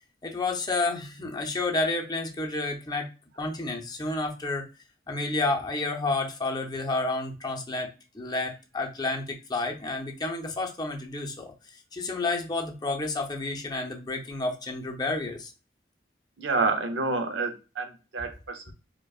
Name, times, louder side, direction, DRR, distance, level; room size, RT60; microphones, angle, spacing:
voice 1, 0.2-3.1 3.4-4.7 5.1-7.9 8.1-11.5 11.9-15.5, left 2 dB, 20° left, 2 dB, 0.6 m, -30 dB
voice 2, 16.4-18.7, right 3 dB, 80° right, 6 dB, 0.6 m, -28 dB
4.8 x 2.2 x 2.4 m, 0.32 s
head